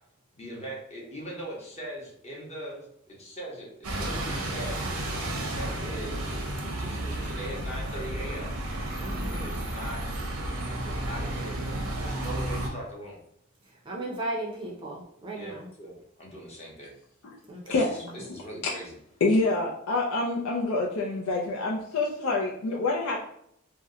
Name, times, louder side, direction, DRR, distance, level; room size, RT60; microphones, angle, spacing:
voice 1, 0.4-5.0 5.5-6.5 6.8-8.6 9.3-10.2 10.7-13.2 15.3-15.9 16.2-16.9 17.7-18.9, right 1 dB, 30° left, -3 dB, 0.8 m, -41 dB
Bus, 3.8-12.7, right 1 dB, 85° right, 0.7 m, -32 dB
voice 2, 9.0-9.6 13.6-15.7 17.5-18.3, right 1 dB, 25° right, -2 dB, 0.5 m, -37 dB
voice 3, 19.2-23.3, left 2 dB, 85° left, -2 dB, 0.4 m, -26 dB
2.8 x 2.0 x 3.6 m, 0.72 s
head